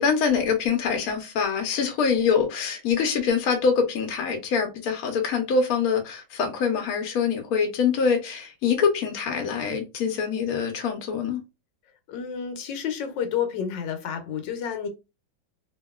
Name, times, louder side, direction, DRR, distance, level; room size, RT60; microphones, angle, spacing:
voice 1, 0.0-11.4, left 6 dB, 60° left, 1.0 m, -24 dB
voice 2, 12.1-14.9, left 8 dB, 80° left, 1.4 m, -30 dB
2.9 x 2.7 x 2.3 m
omnidirectional pair, 2.0 m